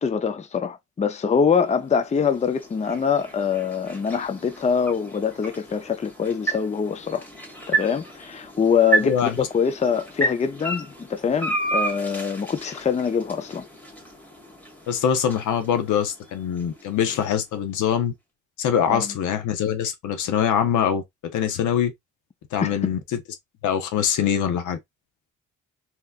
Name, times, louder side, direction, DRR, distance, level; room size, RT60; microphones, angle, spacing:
voice 1, 0.0-7.2 7.7-13.6 18.9-19.1 22.6-22.9, left 6 dB, 25° left, 0.5 m, -24 dB
sound 1, 1.4-17.6, right 2 dB, 5° left, 1.6 m, -32 dB
voice 2, 9.0-9.5 14.9-18.1 18.6-21.0 21.3-21.9 22.5-23.0 23.6-24.8, left 8 dB, 75° left, 0.8 m, -23 dB
3.4 x 2.9 x 2.3 m
cardioid pair, 90°, 30 cm